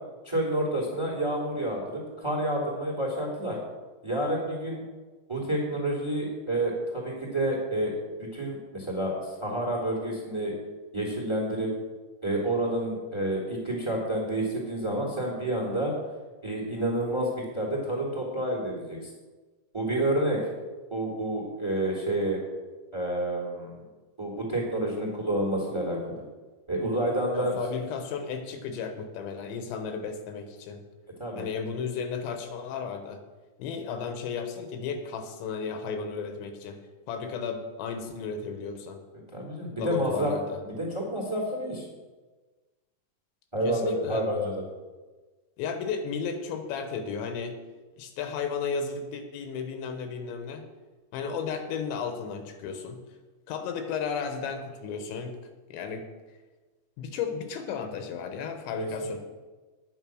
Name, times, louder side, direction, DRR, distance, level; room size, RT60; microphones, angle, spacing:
voice 1, 0.2-3.6 4.0-4.8 5.3-7.9 8.2-10.5 10.9-11.7 12.2-15.9 16.4-19.1 19.7-20.4 20.9-22.4 22.9-23.8 24.2-26.2 26.7-27.6 31.2-31.4 39.3-40.3 40.6-41.8 43.5-44.6 58.8-59.1, right 1 dB, 10° right, -2 dB, 2.0 m, -29 dB
voice 2, 27.3-30.8 31.4-33.2 33.6-36.8 37.1-39.0 39.8-40.6 43.7-44.3 45.6-47.6 48.0-50.7 51.1-53.0 53.5-55.3 55.7-56.1 57.0-59.2, left 6 dB, 80° left, 6 dB, 3.4 m, -34 dB
10.5 x 9.1 x 6.2 m, 1.3 s
omnidirectional pair, 5.3 m